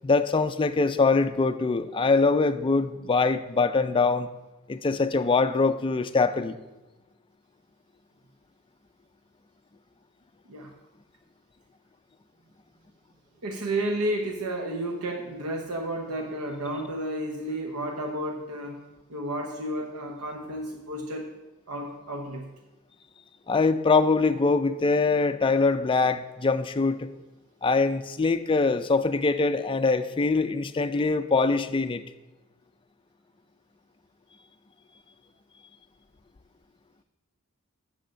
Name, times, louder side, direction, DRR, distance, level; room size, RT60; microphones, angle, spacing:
voice 1, 0.0-4.3 4.7-6.6 23.5-27.1 27.6-32.0, left 3 dB, 25° left, 10 dB, 0.4 m, -23 dB
voice 2, 13.4-18.8 19.1-21.3 21.7-22.5, right 1 dB, 85° right, 2 dB, 0.9 m, -32 dB
7.7 x 6.4 x 5.6 m, 1.1 s
head